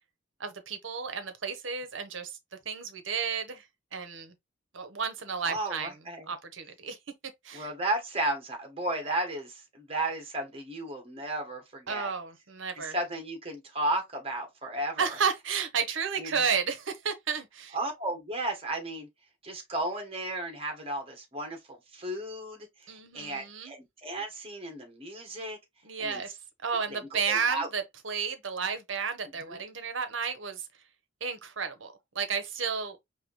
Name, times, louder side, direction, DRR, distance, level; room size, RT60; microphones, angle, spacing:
voice 1, 0.4-2.4 2.6-3.7 3.9-4.3 4.7-5.9 6.3-7.0 7.4-7.7 11.9-12.9 15.0-17.8 22.9-23.7 25.8-30.6 31.2-33.0, right 6 dB, 75° right, 1.0 m, -32 dB
voice 2, 5.4-6.3 7.5-12.1 12.7-15.2 16.2-16.4 17.7-19.1 19.4-25.6 26.0-26.2 26.9-27.7 29.5-29.6, right 1 dB, 30° right, 1.6 m, -34 dB
4.8 x 2.9 x 3.0 m
head